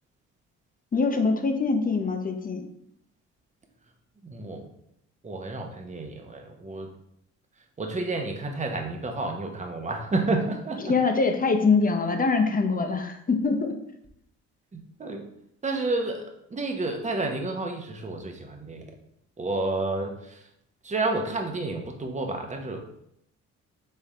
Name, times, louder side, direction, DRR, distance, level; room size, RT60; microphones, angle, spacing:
voice 1, 0.9-2.6 10.8-13.7, left 4 dB, 30° left, 5 dB, 0.7 m, -24 dB
voice 2, 4.2-4.7 5.2-6.9 7.8-10.9 14.7-15.3 15.6-18.9 19.4-20.4 20.8-22.8, right 2 dB, 25° right, 3 dB, 0.9 m, -30 dB
3.7 x 3.3 x 4.2 m, 0.75 s
cardioid pair, 90°, 30 cm